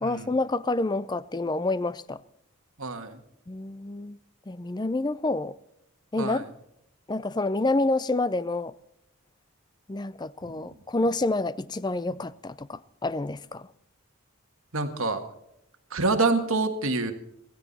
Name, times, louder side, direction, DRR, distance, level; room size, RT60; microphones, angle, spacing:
voice 1, 0.0-2.2 3.5-4.2 4.5-5.6 6.1-6.4 7.1-8.7 9.9-13.7, left 2 dB, 20° left, 0.4 m, -28 dB
voice 2, 2.8-3.2 6.2-6.5 14.7-15.2 15.9-17.1, right 3 dB, 65° right, 1.7 m, -26 dB
15.5 x 15.5 x 4.2 m
head